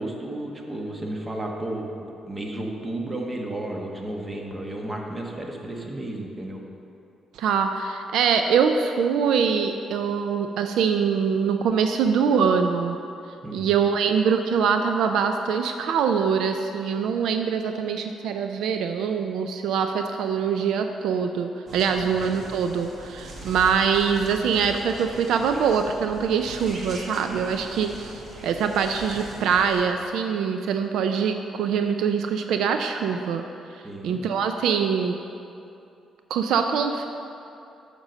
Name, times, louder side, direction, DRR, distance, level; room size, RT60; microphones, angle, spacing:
voice 1, 0.0-6.6 13.4-13.7 33.8-34.2, right 1 dB, 25° right, 1 dB, 1.2 m, -33 dB
voice 2, 7.4-13.0 13.5-33.4 34.0-35.2 36.3-37.1, right 6 dB, 80° right, 6 dB, 0.4 m, -23 dB
sound 1, 21.7-29.8, right 1 dB, 50° right, 1.4 m, -40 dB
7.4 x 5.3 x 6.3 m, 2.7 s
cardioid pair, 90°, 0 cm